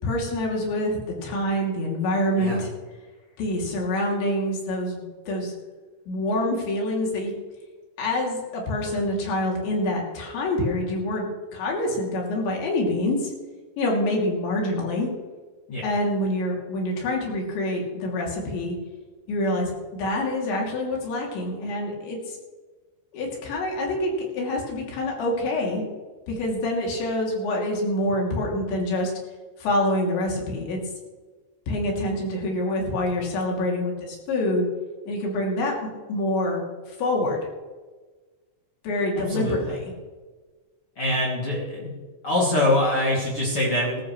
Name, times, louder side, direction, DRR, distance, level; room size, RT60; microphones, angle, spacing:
voice 1, 0.0-2.7 3.4-5.5 6.1-7.3 8.0-13.3 13.8-15.1 15.8-18.8 19.3-22.4 23.1-25.9 26.3-29.1 29.6-30.8 31.7-34.7 35.1-36.6 37.0-37.4 38.8-39.9, left 1 dB, 80° left, -1 dB, 5.3 m, -26 dB
voice 2, 39.2-39.6 41.0-41.9 42.2-44.0, left 1 dB, 35° left, -4 dB, 3.2 m, -24 dB
19.5 x 14.0 x 3.3 m, 1.3 s
omnidirectional pair, 5.1 m